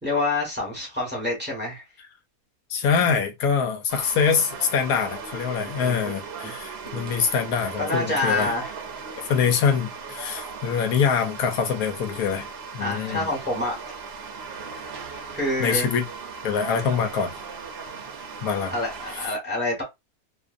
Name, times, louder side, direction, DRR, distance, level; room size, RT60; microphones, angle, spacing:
voice 1, 0.0-1.8 5.8-6.1 6.4-6.6 7.8-8.7 12.8-13.8 15.3-15.9 18.7-19.8, left 2 dB, 10° right, 1.2 m, -27 dB
voice 2, 2.7-8.5 9.2-12.5 12.7-13.3 15.6-16.0 16.4-17.3 18.4-18.7, left 6 dB, 85° left, 1.1 m, -24 dB
sound 1, 3.9-19.3, right 5 dB, 60° right, 0.7 m, -38 dB
2.5 x 2.5 x 2.4 m
omnidirectional pair, 1.5 m